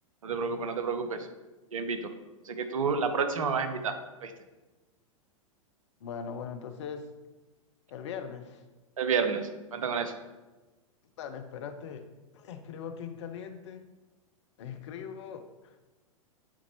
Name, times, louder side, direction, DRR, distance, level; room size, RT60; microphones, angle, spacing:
voice 1, 0.2-1.3 1.7-2.1 2.4-4.3 9.0-10.2, right 5 dB, 70° right, 8 dB, 0.7 m, -30 dB
voice 2, 6.0-7.1 7.9-8.6 11.2-12.1 12.3-13.9 14.6-15.8, left 7 dB, 55° left, 8 dB, 0.6 m, -40 dB
8.7 x 4.0 x 3.0 m, 1.2 s
figure-of-eight pair, 100°, 18 cm